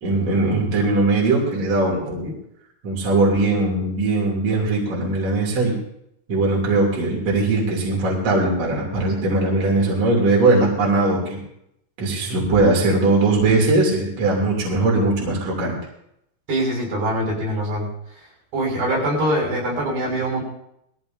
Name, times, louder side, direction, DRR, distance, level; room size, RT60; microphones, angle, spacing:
voice 1, 0.0-2.3 2.8-5.8 6.3-11.4 12.0-15.8, right 2 dB, 45° right, -2 dB, 3.6 m, -20 dB
voice 2, 16.5-17.9 18.5-20.4, right 1 dB, 75° right, -3 dB, 8.5 m, -23 dB
20.5 x 15.0 x 2.7 m, 0.75 s
omnidirectional pair, 4.5 m